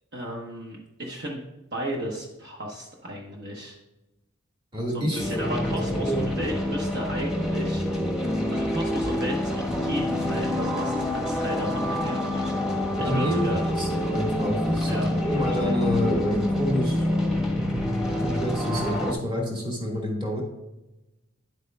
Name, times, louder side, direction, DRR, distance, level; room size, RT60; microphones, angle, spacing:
voice 1, 0.1-1.4 1.7-3.8 4.9-7.8 8.5-12.5 13.0-13.6 14.9-15.8, equal, 60° right, -1 dB, 1.1 m, -34 dB
voice 2, 4.7-5.3 6.0-6.3 13.0-17.0 17.7-17.8 18.2-20.4, equal, 25° right, -1 dB, 1.7 m, -28 dB
sound 1, 5.2-19.1, left 1 dB, 5° right, 1.1 m, -27 dB
9.8 x 8.0 x 2.3 m, 0.99 s
head